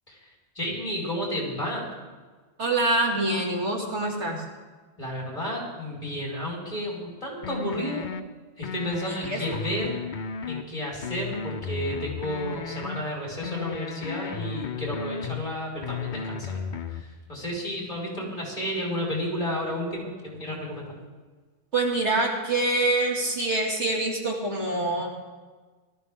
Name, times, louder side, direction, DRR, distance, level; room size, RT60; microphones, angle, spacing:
voice 1, 0.5-1.8 5.0-8.1 8.6-9.9 10.5-16.5 17.3-21.0, equal, 30° left, -4 dB, 4.8 m, -32 dB
voice 2, 2.6-4.4 9.0-9.4 21.7-25.1, right 2 dB, 75° right, -1 dB, 2.7 m, -25 dB
sound 1, 7.4-8.2 8.6-10.6 11.0-13.0 13.4-15.4 15.8-17.0, left 5 dB, 50° left, 0.7 m, -34 dB
18.5 x 13.5 x 3.6 m, 1.4 s
omnidirectional pair, 1.2 m